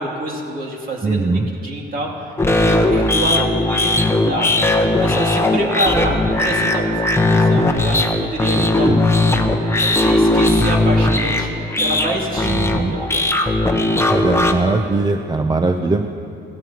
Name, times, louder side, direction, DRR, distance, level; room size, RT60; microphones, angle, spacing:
voice 1, 0.0-4.5 4.9-13.2, right 1 dB, 45° right, -1 dB, 2.5 m, -27 dB
voice 2, 1.0-1.5 8.5-9.0 12.4-13.0 14.1-16.1, right 3 dB, 20° right, 6 dB, 0.5 m, -20 dB
sound 1, 2.4-14.5, left 2 dB, 15° left, 0.9 m, -17 dB
17.0 x 15.0 x 2.9 m, 2.7 s
cardioid pair, 90°, 20 cm